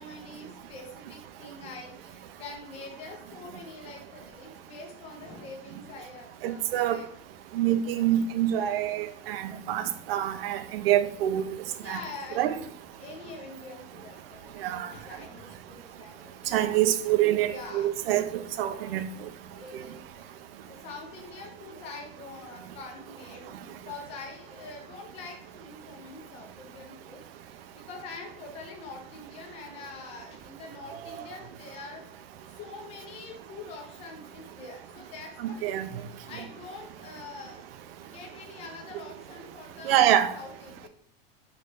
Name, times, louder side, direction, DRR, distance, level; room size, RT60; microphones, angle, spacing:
voice 1, 0.0-7.1 11.8-12.7 13.0-16.8 17.5-17.9 18.4-19.0 19.5-20.1 20.7-32.0 32.5-37.7 38.0-40.0 40.3-40.9, left 3 dB, 20° left, 0.5 m, -45 dB
voice 2, 6.4-7.0 7.5-11.4 11.9-12.0 12.4-12.5 14.6-14.9 16.5-18.3 18.6-19.1 35.4-35.9 39.9-40.3, right 12 dB, 75° right, 0.5 m, -25 dB
4.0 x 3.1 x 3.3 m
supercardioid pair, 175°, 30 cm